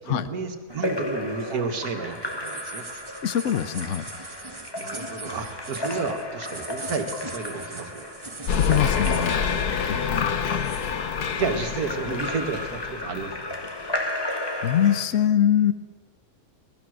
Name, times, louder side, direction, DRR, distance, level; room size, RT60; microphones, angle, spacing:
voice 1, 0.0-2.9 4.8-8.1 10.3-10.4 11.3-13.5, right 4 dB, 80° right, 6 dB, 2.2 m, -31 dB
Splash splatter / Drip / Trickle dribble, 0.7-15.0, left 1 dB, 15° left, 1.4 m, -34 dB
sound 1, 0.7-9.8 10.0-10.9, right 3 dB, 20° right, 1.0 m, -40 dB
voice 2, 3.2-4.1 8.6-9.5 9.9-10.3 14.6-15.7, left 10 dB, 55° left, 14 dB, 1.1 m, -23 dB
sound 2, 8.5-13.9, left 7 dB, 90° left, 1.6 m, -27 dB
24.5 x 18.5 x 6.4 m, 1.4 s
omnidirectional pair, 1.6 m